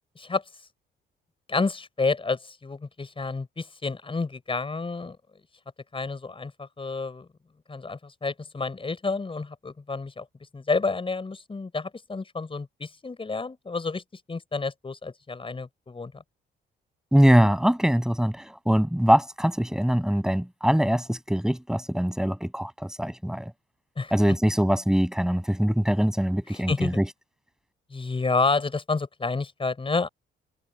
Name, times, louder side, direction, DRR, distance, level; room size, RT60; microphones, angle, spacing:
voice 1, 1.5-5.2 5.9-7.3 7.7-10.2 10.5-14.0 14.3-16.2 24.0-24.1 26.5-27.0 27.9-30.1, left 3 dB, 25° left, 6.1 m, -29 dB
voice 2, 17.1-23.5 24.1-27.1, equal, 5° right, 7.9 m, -23 dB
cardioid pair, 90°, 20 cm